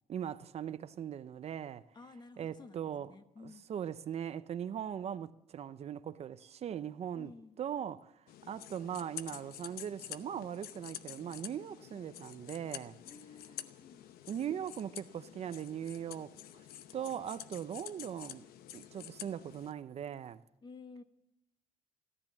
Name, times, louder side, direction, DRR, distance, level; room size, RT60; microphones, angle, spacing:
voice 1, 0.1-1.8 2.4-3.1 3.4-7.3 7.6-8.1 8.5-13.0 14.3-16.3 16.9-18.4 18.7-20.4, right 9 dB, 45° right, 0.6 m, -40 dB
voice 2, 1.9-3.6 7.1-7.6 13.0-14.0 20.6-21.0, left 4 dB, 30° left, 1.2 m, -53 dB
sound 1, 8.3-19.7, left 11 dB, 80° left, 0.8 m, -49 dB
14.5 x 13.5 x 7.4 m
cardioid pair, 125°, 15 cm